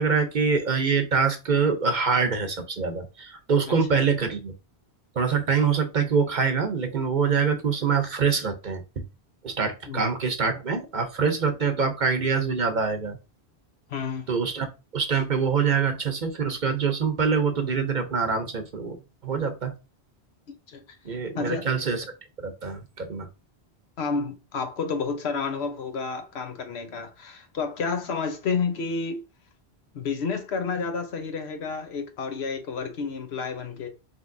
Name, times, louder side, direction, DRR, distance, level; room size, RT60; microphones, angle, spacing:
voice 1, 0.0-4.5 5.1-8.8 9.4-13.2 14.3-19.0 19.2-19.7 21.0-22.0 22.4-23.3, right 5 dB, 50° right, 0.8 m, -25 dB
voice 2, 3.7-4.0 9.9-10.0 13.9-14.3 20.5-20.8 21.3-21.7 24.0-29.2 29.9-33.9, left 5 dB, 75° left, 1.1 m, -30 dB
5.2 x 3.2 x 2.6 m
omnidirectional pair, 1.1 m